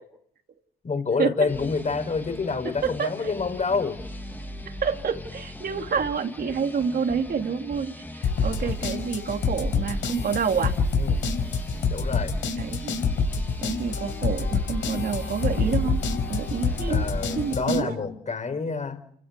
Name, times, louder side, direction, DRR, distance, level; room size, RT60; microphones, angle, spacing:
voice 1, 0.8-4.0 11.0-11.2 11.9-12.3 16.9-19.0, left 4 dB, 35° left, 9 dB, 4.9 m, -27 dB
sound 1, 1.5-17.6, left 1 dB, 10° left, 2.4 m, -40 dB
voice 2, 2.8-3.3 4.8-10.7 12.6-12.9 13.6-18.0, right 6 dB, 50° right, 4 dB, 2.9 m, -28 dB
sound 2, 8.2-17.8, left 4 dB, 75° left, 4.9 m, -27 dB
29.5 x 16.0 x 8.3 m, 0.69 s
cardioid pair, 90°, 20 cm